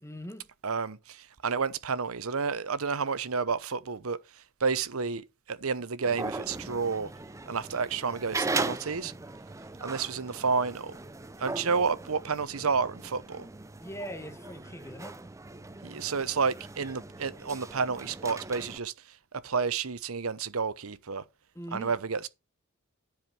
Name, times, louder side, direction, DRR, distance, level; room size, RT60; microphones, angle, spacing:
voice 1, 0.0-0.5 13.8-15.3 21.5-21.9, equal, 15° left, 1.1 m, -41 dB
voice 2, 0.6-7.1 7.5-9.1 9.8-11.0 11.4-13.5 15.8-19.2 19.4-21.2 21.7-22.3, right 5 dB, 80° right, 0.9 m, -30 dB
sound 1, 6.0-18.8, right 3 dB, 15° right, 0.5 m, -39 dB
10.5 x 5.0 x 5.9 m
head